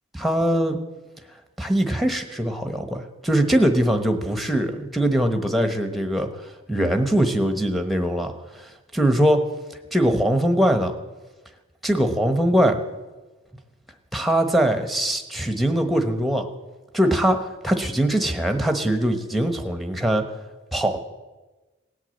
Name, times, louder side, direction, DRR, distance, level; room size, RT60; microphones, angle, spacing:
voice 1, 0.1-0.8 1.6-6.3 6.7-8.3 8.6-9.4 9.9-11.0 11.8-12.8 14.1-16.4 16.9-20.3 20.7-21.0, right 1 dB, ahead, 6 dB, 1.1 m, -22 dB
17.5 x 8.3 x 7.8 m, 1.2 s
head